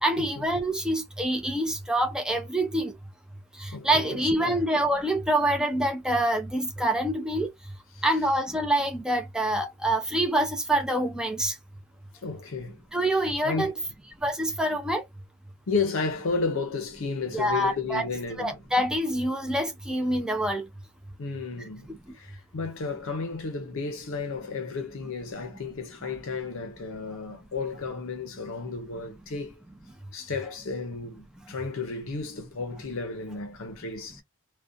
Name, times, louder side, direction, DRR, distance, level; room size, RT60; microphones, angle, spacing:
voice 1, 0.0-2.9 3.6-7.5 8.0-11.5 12.9-13.7 14.2-15.0 17.3-18.0 18.4-20.6, right 1 dB, 5° right, 0.4 m, -26 dB
voice 2, 3.7-4.7 7.9-8.1 12.1-12.8 13.4-13.7 15.7-18.6 21.2-21.9 22.1-29.6 30.1-34.2, left 4 dB, 65° left, 0.6 m, -33 dB
2.5 x 2.1 x 2.5 m
head